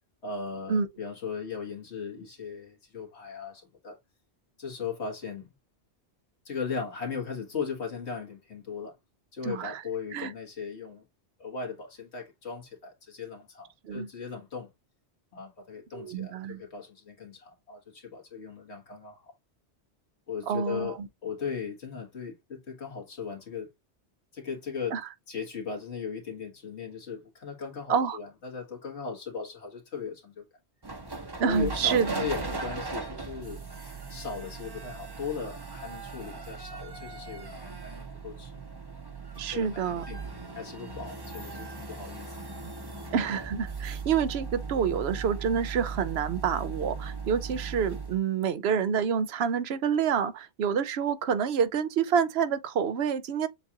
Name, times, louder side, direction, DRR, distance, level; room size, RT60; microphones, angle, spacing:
voice 1, 0.2-4.0 4.6-5.5 6.5-8.9 9.3-11.0 11.4-14.7 15.3-19.3 20.3-23.7 24.3-25.0 25.3-30.5 31.4-38.5 39.5-42.4, left 6 dB, 70° left, 1.9 m, -38 dB
voice 2, 9.4-9.8 10.1-10.3 13.8-14.1 15.9-16.6 20.5-21.1 24.9-25.0 27.9-28.2 31.4-32.3 39.4-40.0 43.1-53.5, right 7 dB, 70° right, 0.8 m, -28 dB
sound 1, 30.8-48.2, right 4 dB, 25° right, 0.8 m, -38 dB
7.1 x 2.4 x 2.8 m
omnidirectional pair, 1.2 m